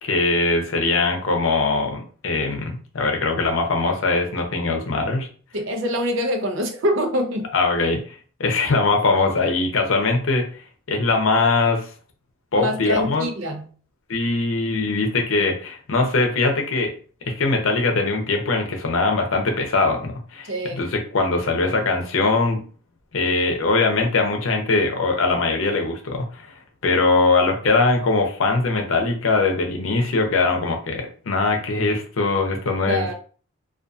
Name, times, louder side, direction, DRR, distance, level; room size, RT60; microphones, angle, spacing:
voice 1, 0.0-5.3 7.5-8.0 8.4-10.4 10.9-11.9 12.5-13.3 14.1-16.9 17.3-22.6 23.1-26.5 26.8-33.1, left 3 dB, 80° left, 0.6 m, -21 dB
voice 2, 5.5-7.5 12.6-13.7 20.5-20.8 32.9-33.1, equal, 70° right, 0.6 m, -25 dB
2.6 x 2.4 x 2.3 m
head